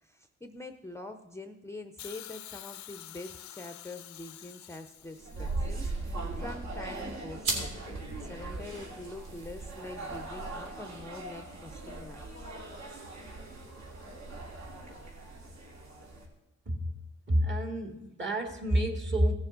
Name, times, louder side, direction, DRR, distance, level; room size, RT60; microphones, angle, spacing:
voice 1, 0.0-12.5, left 2 dB, 10° left, 7 dB, 0.6 m, -45 dB
Hiss, 2.0-6.1 7.1-7.2, left 13 dB, 70° left, 0.5 m, -48 dB
sound 1, 5.1-16.2, right 2 dB, 60° right, 2.5 m, -40 dB
sound 2, 7.4-16.4, right 2 dB, 85° right, 2.9 m, -43 dB
voice 2, 17.3-19.3, equal, 40° right, 4 dB, 2.0 m, -28 dB
16.5 x 7.0 x 3.9 m, 0.99 s
cardioid pair, 90°, 30 cm